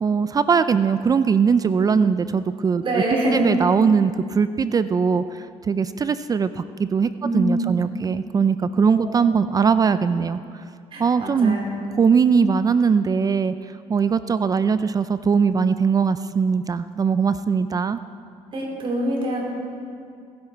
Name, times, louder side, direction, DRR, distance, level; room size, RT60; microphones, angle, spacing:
voice 1, 0.0-2.8 3.3-10.4 11.0-11.6 11.9-13.5 13.9-18.0, right 6 dB, 30° right, 13 dB, 0.4 m, -20 dB
voice 2, 2.8-3.5 7.2-7.4 7.7-7.8 8.9-9.1 10.9-11.9 18.5-19.4, right 1 dB, 50° right, -2 dB, 4.3 m, -25 dB
19.5 x 10.5 x 4.5 m, 2.3 s
cardioid pair, 95°, 12 cm